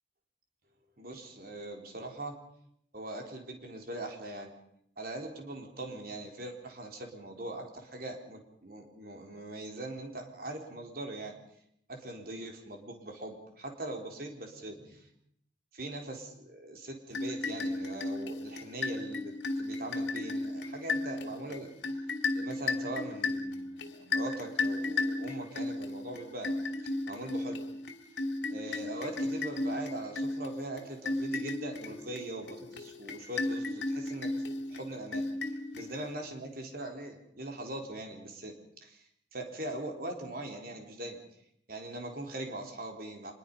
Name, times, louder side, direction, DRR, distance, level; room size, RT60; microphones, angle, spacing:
voice 1, 1.0-2.4 2.9-4.5 5.0-11.3 11.9-15.1 15.7-21.7 22.3-26.6 27.1-27.6 28.5-34.3 34.7-38.5 38.8-39.0 39.3-41.2 41.7-43.3, right 1 dB, 55° right, 2 dB, 4.0 m, -41 dB
sound 1, 17.1-36.3, left 2 dB, 70° left, 2.7 m, -35 dB
25.0 x 21.5 x 5.6 m, 0.71 s
head